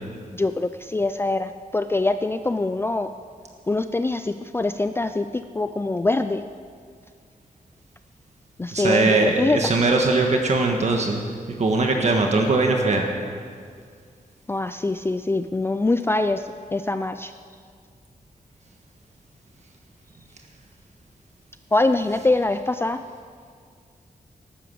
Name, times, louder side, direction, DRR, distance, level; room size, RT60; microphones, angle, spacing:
voice 1, 0.3-3.1 3.7-6.4 8.6-9.6 14.5-17.3 21.7-23.0, left 2 dB, 15° left, 9 dB, 0.4 m, -24 dB
voice 2, 8.7-11.2 11.5-13.0, right 3 dB, 50° right, 2 dB, 1.4 m, -20 dB
13.5 x 12.0 x 7.7 m, 2.1 s
wide cardioid pair, 165°, 15 cm